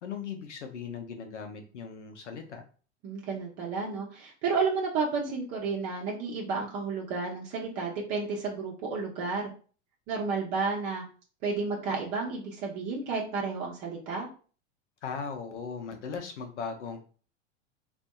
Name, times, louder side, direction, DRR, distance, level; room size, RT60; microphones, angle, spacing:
voice 1, 0.0-2.6 15.0-17.0, left 6 dB, 90° left, 5 dB, 0.7 m, -38 dB
voice 2, 3.0-9.5 10.1-11.0 11.4-14.3, right 4 dB, 50° right, -2 dB, 0.8 m, -31 dB
2.6 x 2.6 x 2.2 m, 0.39 s
hypercardioid pair, 95°, 34 cm